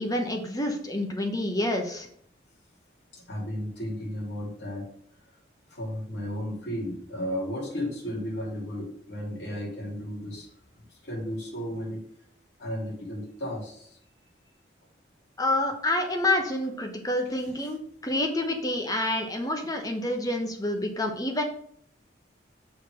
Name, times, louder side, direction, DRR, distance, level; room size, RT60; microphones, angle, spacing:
voice 1, 0.0-2.1 15.4-21.4, left 1 dB, 20° left, 4 dB, 1.0 m, -28 dB
voice 2, 3.1-4.8 5.7-10.5 10.8-12.0 12.6-14.0, equal, 65° left, -2 dB, 2.9 m, -34 dB
6.4 x 4.0 x 6.3 m, 0.66 s
head